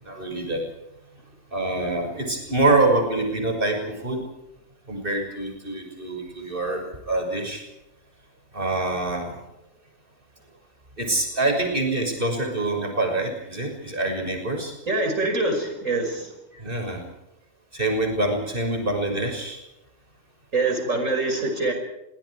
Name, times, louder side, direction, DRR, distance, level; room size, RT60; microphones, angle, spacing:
voice 1, 0.0-0.6 1.5-4.2 4.9-7.6 8.5-9.3 11.0-14.7 16.5-17.0 17.7-19.6, right 2 dB, 45° right, 3 dB, 6.4 m, -25 dB
voice 2, 14.9-16.3 20.5-21.7, right 2 dB, 85° right, 4 dB, 6.0 m, -24 dB
30.0 x 23.0 x 4.8 m, 0.89 s
omnidirectional pair, 1.3 m